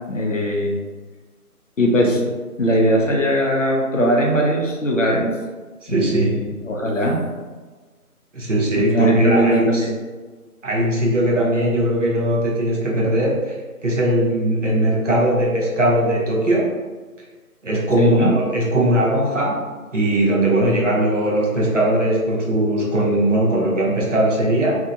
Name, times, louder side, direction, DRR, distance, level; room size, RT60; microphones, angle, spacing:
voice 1, 0.1-0.8 1.8-2.3 2.6-5.3 5.9-7.2 8.8-9.9 18.0-18.3, equal, 55° left, -1 dB, 0.6 m, -20 dB
voice 2, 5.8-6.4 8.3-9.9 10.6-13.6 13.8-16.7 17.6-24.8, right 1 dB, 55° right, -4 dB, 0.7 m, -19 dB
2.7 x 2.3 x 2.6 m, 1.3 s
figure-of-eight pair, 165°, 45 cm